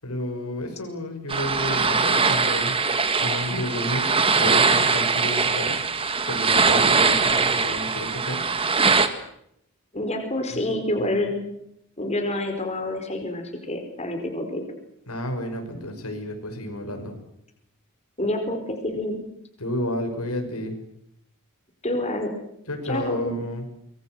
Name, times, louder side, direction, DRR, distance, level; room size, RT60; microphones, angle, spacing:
voice 1, 0.0-2.7 3.2-5.8 6.3-8.4 10.7-11.1 15.1-17.1 19.6-20.8 22.7-23.6, left 1 dB, 85° left, 5 dB, 6.2 m, -31 dB
sound 1, 1.3-9.1, right 4 dB, 25° right, 1.9 m, -21 dB
voice 2, 9.9-11.4 12.0-14.6 18.2-19.2 21.8-22.3 22.8-23.5, left 1 dB, 30° left, 4 dB, 4.7 m, -27 dB
25.0 x 22.5 x 7.9 m, 0.75 s
head